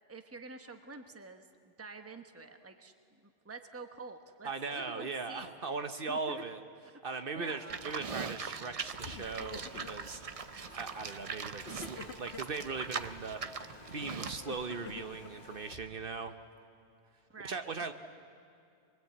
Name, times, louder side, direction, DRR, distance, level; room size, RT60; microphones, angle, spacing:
voice 1, 0.0-5.7 6.1-6.4 7.1-7.9 17.3-17.7, right 3 dB, 15° right, 7 dB, 1.0 m, -48 dB
voice 2, 4.4-6.6 7.0-10.2 10.7-16.3 17.4-17.9, right 4 dB, 60° right, 7 dB, 1.1 m, -39 dB
Livestock farm animals working animals, 7.7-14.4, right 5 dB, 40° right, 0.6 m, -41 dB
Crying sobbing, 8.5-8.8 9.1-10.1 10.6-11.1 11.6-12.7 13.6-15.8, left 5 dB, 80° left, 1.3 m, -50 dB
Mechanisms, 8.7-15.9, left 2 dB, 55° left, 1.5 m, -54 dB
24.5 x 22.0 x 8.6 m, 2.5 s
omnidirectional pair, 1.1 m